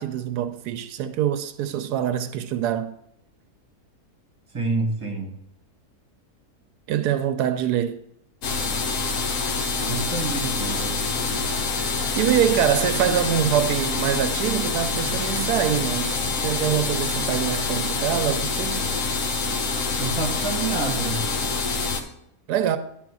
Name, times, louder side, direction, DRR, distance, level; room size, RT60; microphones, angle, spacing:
voice 1, 0.0-2.9 6.9-8.0 12.1-18.8 22.5-22.8, right 10 dB, 90° right, 1.2 m, -24 dB
voice 2, 4.5-5.4 9.8-11.5 20.0-21.2, right 3 dB, 20° right, 1.6 m, -28 dB
sound 1, 8.4-22.0, left 4 dB, 60° left, 1.2 m, -26 dB
sound 2, 11.1-17.9, left 2 dB, 35° left, 1.9 m, -42 dB
10.5 x 4.1 x 6.1 m
omnidirectional pair, 1.7 m